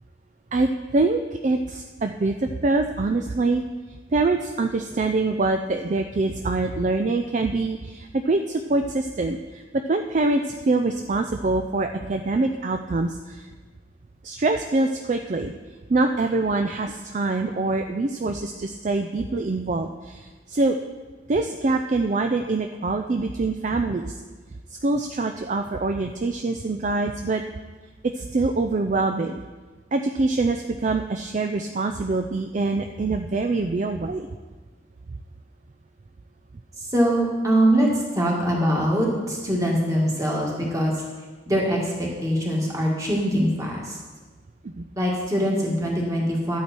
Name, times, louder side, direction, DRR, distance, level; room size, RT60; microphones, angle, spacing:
voice 1, 0.5-3.6 4.1-13.5 14.2-15.5 15.9-20.8 21.3-24.2 24.8-27.4 28.0-29.4 29.9-34.3 44.6-44.8, right 3 dB, 40° right, 6 dB, 0.4 m, -24 dB
voice 2, 36.8-40.9 41.5-44.0 45.0-46.6, equal, 15° right, -3 dB, 2.0 m, -23 dB
12.0 x 8.4 x 4.5 m, 1.3 s
head